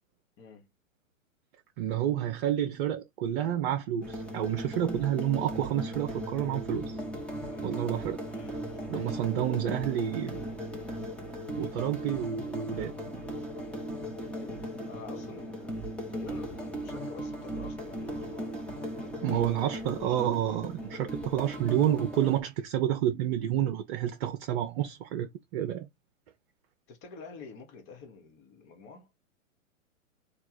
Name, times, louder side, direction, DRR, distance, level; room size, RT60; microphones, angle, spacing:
voice 1, 0.4-0.7 7.4-7.9 8.3-8.8 14.3-19.5 26.9-29.1, left 5 dB, 30° left, 1.4 m, -48 dB
voice 2, 1.8-7.0 7.6-8.2 8.9-10.4 11.6-12.9 19.2-25.9, right 11 dB, 45° right, 0.8 m, -29 dB
sound 1, 4.0-22.4, equal, 5° left, 1.1 m, -38 dB
3.7 x 2.5 x 4.6 m
hypercardioid pair, 120°, 41 cm